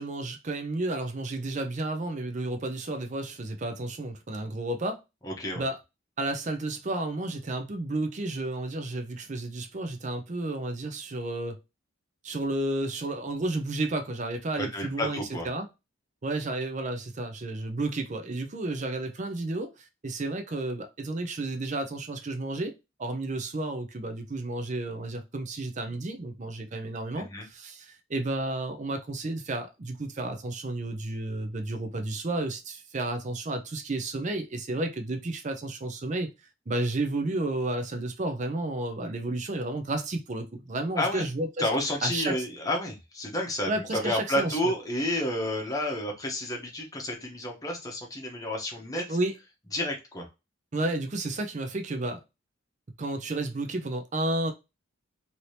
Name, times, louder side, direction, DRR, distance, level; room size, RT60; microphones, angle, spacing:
voice 1, 0.0-5.0 5.6-5.8 6.2-11.6 12.2-15.2 15.4-15.7 16.2-22.7 23.0-36.3 36.7-41.7 42.0-42.4 43.7-44.6 49.1-49.3 50.7-52.2 53.0-54.5, right 2 dB, 35° right, 0.5 m, -32 dB
voice 2, 5.2-5.7 14.6-15.5 27.1-27.4 41.0-41.3 41.6-49.2 49.7-50.3, left 1 dB, 15° left, 0.8 m, -30 dB
2.8 x 2.8 x 3.2 m
head